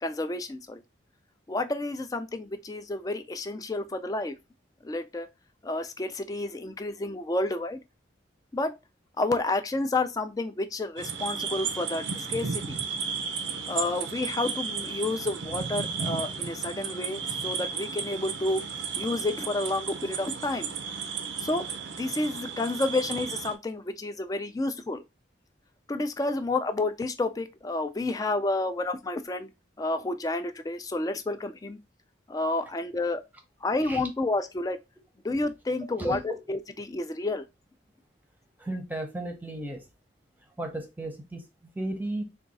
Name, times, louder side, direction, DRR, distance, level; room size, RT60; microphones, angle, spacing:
voice 1, 0.0-0.8 1.5-4.3 4.8-5.3 5.6-7.8 8.5-8.7 9.2-12.8 13.7-18.6 19.0-20.7 21.4-21.6 22.0-25.0 25.9-29.5 29.8-31.8 32.3-33.2 33.6-34.8 35.2-37.5, left 2 dB, 20° left, 0.3 m, -30 dB
sound 1, 11.0-23.5, right 6 dB, 85° right, 0.6 m, -34 dB
voice 2, 36.0-36.4 38.6-39.9 40.6-42.2, right 1 dB, 10° right, 0.7 m, -34 dB
3.5 x 2.3 x 3.9 m
head